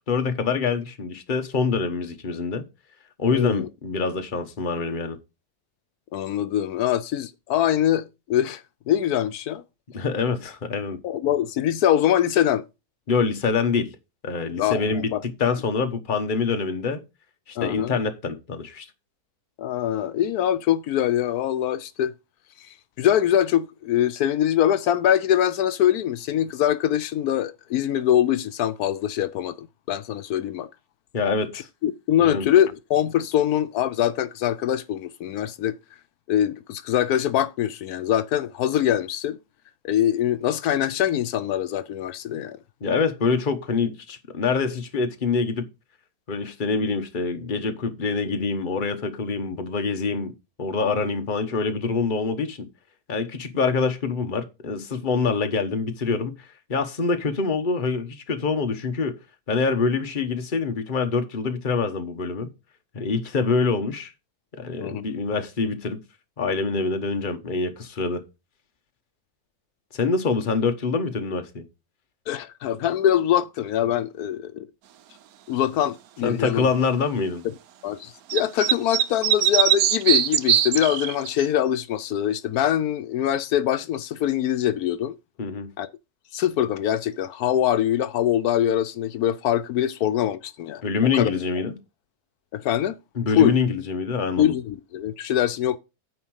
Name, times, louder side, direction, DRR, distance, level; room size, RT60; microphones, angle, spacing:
voice 1, 0.1-2.7 3.2-5.2 9.9-11.0 13.1-14.0 14.2-17.0 17.5-18.9 31.1-31.7 32.2-32.5 42.8-45.7 46.3-50.3 50.6-52.7 53.1-59.2 59.5-62.5 62.9-64.1 64.6-66.0 66.4-68.2 69.9-71.6 76.2-77.4 85.4-85.7 90.8-91.8 93.2-94.5, left 4 dB, 35° left, 1.2 m, -25 dB
voice 2, 3.3-3.7 6.1-8.6 8.9-9.6 11.0-12.6 14.6-15.2 17.6-18.0 19.6-22.1 22.6-30.7 31.8-35.8 36.3-39.4 39.8-42.6 64.8-65.0 72.3-74.7 75.5-76.7 77.4-77.5 77.8-85.2 85.8-85.9 86.3-90.8 91.1-91.3 92.5-93.0 93.3-93.6 94.4-95.8, left 11 dB, 80° left, 1.1 m, -23 dB
sound 1, 78.3-81.5, right 11 dB, 75° right, 1.1 m, -20 dB
9.4 x 4.4 x 6.3 m
omnidirectional pair, 1.6 m